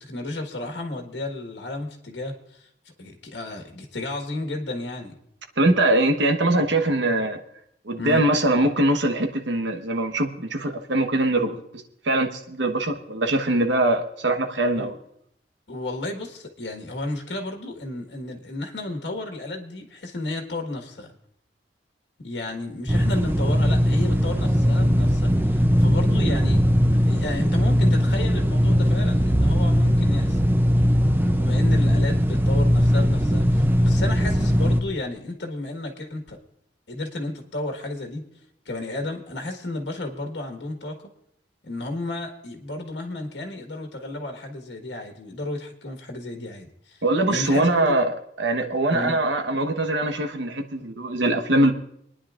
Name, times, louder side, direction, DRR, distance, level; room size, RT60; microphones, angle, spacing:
voice 1, 0.0-2.7 3.0-5.2 8.0-8.2 14.7-14.9 15.7-21.1 22.2-26.6 27.0-30.5 31.3-36.4 36.9-38.2 38.6-41.0 41.6-47.0 47.3-48.0 48.9-49.2, left 2 dB, 75° left, 3 dB, 1.5 m, -32 dB
voice 2, 5.6-7.4 7.8-15.0 47.0-51.7, right 1 dB, 85° right, 6 dB, 1.1 m, -22 dB
sound 1, 22.9-34.8, equal, 10° right, 0.5 m, -19 dB
26.5 x 10.0 x 2.5 m, 0.74 s
head